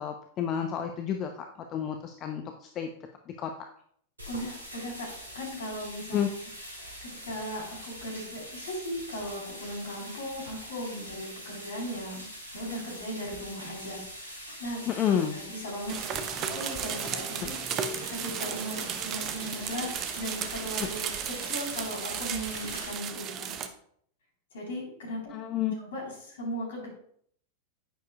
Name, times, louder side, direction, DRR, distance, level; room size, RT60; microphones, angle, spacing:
voice 1, 0.0-2.9 3.3-3.5 6.1-6.3 14.9-15.4 17.4-17.5 20.8-20.9 25.3-25.8, left 9 dB, 35° left, 5 dB, 0.7 m, -30 dB
sound 1, 4.2-22.9, equal, 75° right, 3.3 m, -43 dB
voice 2, 4.3-5.1 5.3-6.2 7.0-12.3 12.5-14.3 14.6-14.8 15.3-16.0 16.4-17.6 18.1-23.6 24.5-25.2 25.9-26.9, equal, 60° left, 0 dB, 4.1 m, -37 dB
sound 2, 15.9-23.7, right 8 dB, 35° right, 0.9 m, -34 dB
10.0 x 9.4 x 2.4 m, 0.65 s
figure-of-eight pair, 90°, 0 cm